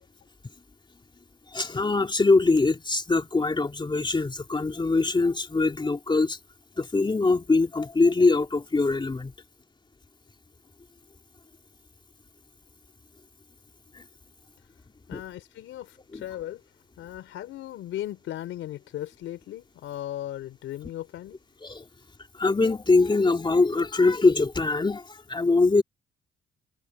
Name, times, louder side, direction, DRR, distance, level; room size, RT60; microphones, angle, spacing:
voice 1, 1.5-6.4 6.8-9.3 13.9-14.0 15.1-15.2 16.1-16.2 21.6-21.8 22.4-25.8, left 3 dB, 25° left, 2.7 m, -23 dB
voice 2, 15.1-16.6 17.0-21.4, left 13 dB, 85° left, 3.8 m, -37 dB
cardioid pair, 90°, 20 cm